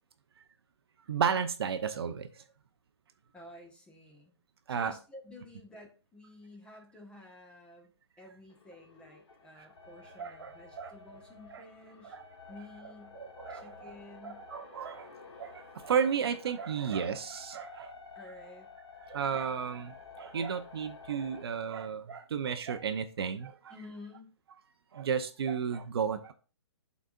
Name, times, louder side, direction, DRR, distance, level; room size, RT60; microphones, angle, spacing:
voice 1, 1.1-2.3 4.7-4.9 9.6-9.7 10.2-10.9 11.5-11.6 12.0-12.2 13.2-13.9 14.2-15.1 15.4-17.9 19.0-23.7 24.9-26.3, right 7 dB, 60° right, 8 dB, 0.7 m, -33 dB
voice 2, 3.3-4.4 4.7-7.9 8.2-12.2 12.5-13.2 13.5-14.5 18.1-18.7 23.7-24.3, left 2 dB, 5° left, 1 dB, 1.3 m, -51 dB
sound 1, 8.5-21.4, left 4 dB, 75° left, 2.3 m, -52 dB
12.0 x 4.1 x 2.5 m, 0.35 s
hypercardioid pair, 135°, 14 cm